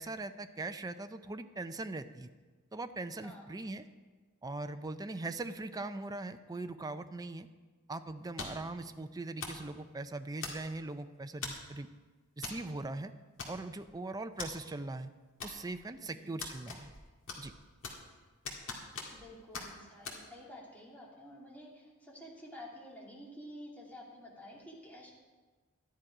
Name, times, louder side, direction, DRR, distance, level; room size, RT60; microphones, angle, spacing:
voice 1, 0.0-2.3 2.7-3.9 4.4-7.5 7.9-11.9 12.4-13.1 13.5-15.1 15.4-16.9 17.4-17.5, right 2 dB, 15° right, 9 dB, 0.5 m, -40 dB
sound 1, 8.4-8.7 9.4-9.7 10.4-10.8 11.4-11.7 12.4-12.6 12.9-13.0 13.4-13.9 14.4-14.5 15.4-15.9 16.4-17.0 17.3-18.1 18.4-19.3 19.5-19.7 20.0-20.2, left 4 dB, 65° left, 2.0 m, -42 dB
voice 2, 19.1-25.1, left 1 dB, 5° left, -4 dB, 2.9 m, -50 dB
13.0 x 10.5 x 4.9 m, 1.3 s
head